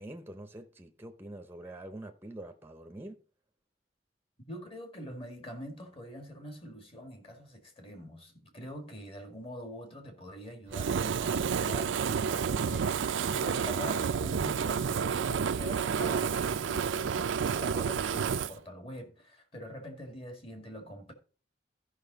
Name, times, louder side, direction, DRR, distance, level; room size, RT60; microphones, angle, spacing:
voice 1, 0.0-3.2, right 1 dB, 10° right, 0.7 m, -45 dB
voice 2, 4.5-21.1, equal, 30° left, 1.9 m, -44 dB
Fire, 10.7-18.5, right 6 dB, 85° right, 0.4 m, -30 dB
13.5 x 5.6 x 4.0 m
head